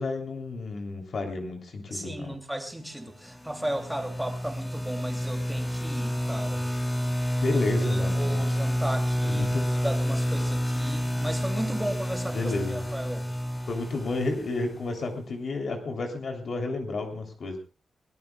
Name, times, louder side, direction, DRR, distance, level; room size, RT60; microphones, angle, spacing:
voice 1, 0.0-2.4 7.4-8.4 9.2-9.6 12.3-12.9 13.7-17.6, left 3 dB, 55° left, 3 dB, 3.3 m, -31 dB
voice 2, 1.9-6.6 7.5-13.3, right 1 dB, 5° right, 5 dB, 2.9 m, -35 dB
sound 1, 3.3-15.1, equal, 10° left, 2.7 m, -29 dB
23.0 x 19.0 x 2.4 m, 0.33 s
wide cardioid pair, 155°, 0 cm